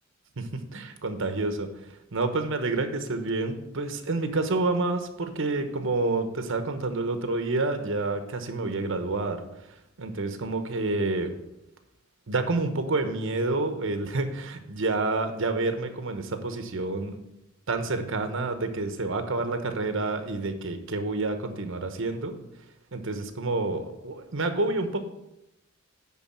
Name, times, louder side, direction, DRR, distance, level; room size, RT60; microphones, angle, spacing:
voice 1, 0.4-1.7 2.1-9.4 10.0-11.3 12.3-17.2 17.7-22.3 22.9-25.0, right 3 dB, 65° right, 8 dB, 1.0 m, -28 dB
9.8 x 3.9 x 7.4 m, 0.87 s
head